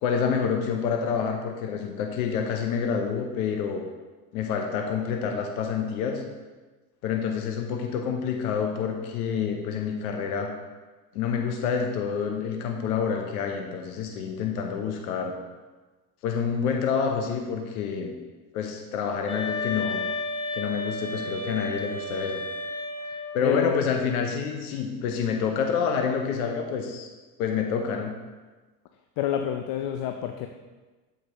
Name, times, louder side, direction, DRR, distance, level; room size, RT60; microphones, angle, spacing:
voice 1, 0.0-3.8 4.3-6.2 7.0-10.5 11.1-15.3 16.2-18.1 18.5-20.0 20.5-22.4 23.3-27.1 27.4-28.1, left 6 dB, 85° left, 3 dB, 0.8 m, -28 dB
sound 1, 19.3-23.4, left 2 dB, 10° left, 1.3 m, -32 dB
voice 2, 23.4-23.8 29.2-30.5, left 10 dB, 55° left, 5 dB, 0.6 m, -28 dB
7.7 x 5.1 x 3.0 m, 1.2 s
hypercardioid pair, 80°, 43 cm